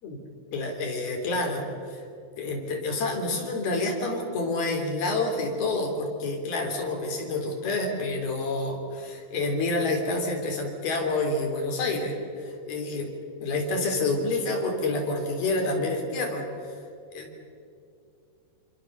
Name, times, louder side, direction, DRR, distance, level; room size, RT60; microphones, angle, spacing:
voice 1, 0.5-2.0 2.4-13.1 13.4-16.7 17.1-17.4, left 2 dB, 60° left, 2 dB, 5.3 m, -28 dB
27.5 x 25.5 x 6.7 m, 2.5 s
omnidirectional pair, 4.9 m